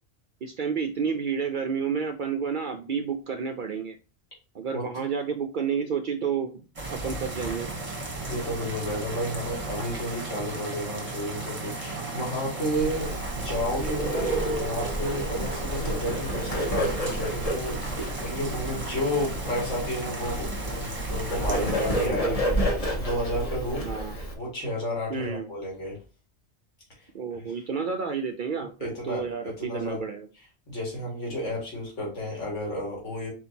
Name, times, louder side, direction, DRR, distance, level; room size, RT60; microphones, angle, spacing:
voice 1, 0.4-4.0 4.5-7.7 21.5-22.6 23.8-24.2 25.1-25.5 27.1-30.3, right 6 dB, 60° right, 5 dB, 0.5 m, -31 dB
sound 1, 6.8-22.1, right 2 dB, 25° right, 1.1 m, -35 dB
voice 2, 8.3-13.1 13.3-23.9 24.3-26.0 28.8-30.0 30.7-33.3, equal, 70° left, -3 dB, 2.3 m, -32 dB
Bird, 12.7-24.3, right 1 dB, 30° left, 1.2 m, -30 dB
4.5 x 4.3 x 2.7 m, 0.34 s
omnidirectional pair, 1.3 m